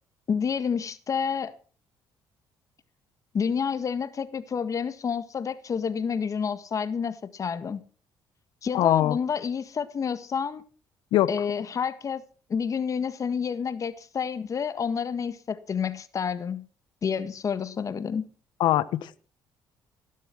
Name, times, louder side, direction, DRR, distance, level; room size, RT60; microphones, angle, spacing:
voice 1, 0.3-1.5 3.3-7.8 8.6-10.6 11.3-12.2 12.5-16.6 17.0-18.3, left 6 dB, 45° left, 1.7 m, -29 dB
voice 2, 8.7-9.2 11.1-11.3 18.6-19.2, left 14 dB, 75° left, 1.1 m, -22 dB
17.0 x 11.0 x 6.1 m
cardioid pair, 85°, 8 cm